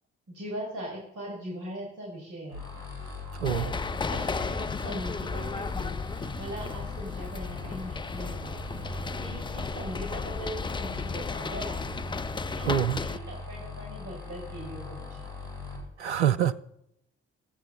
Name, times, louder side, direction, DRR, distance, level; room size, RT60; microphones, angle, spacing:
voice 1, 0.3-2.6 3.5-3.7 4.1-11.9 12.5-15.3, right 1 dB, 65° right, -2 dB, 5.4 m, -40 dB
sound 1, 2.5-15.8, left 2 dB, 85° left, 3.7 m, -40 dB
sound 2, 3.4-13.2, left 4 dB, 15° left, 0.4 m, -34 dB
voice 2, 12.6-13.0 16.0-16.6, right 10 dB, 90° right, 9 dB, 0.6 m, -25 dB
25.5 x 8.8 x 4.0 m, 0.78 s
figure-of-eight pair, 40°, 33 cm